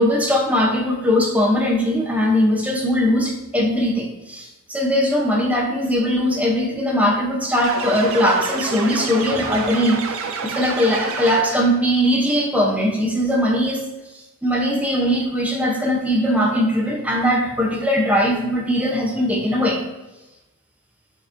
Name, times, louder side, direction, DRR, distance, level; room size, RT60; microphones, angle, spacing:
voice 1, 0.0-13.8 14.4-19.8, equal, 5° right, -1 dB, 0.7 m, -20 dB
sound 1, 7.6-11.8, right 4 dB, 65° right, 0.5 m, -28 dB
6.3 x 2.9 x 2.6 m, 1.0 s
head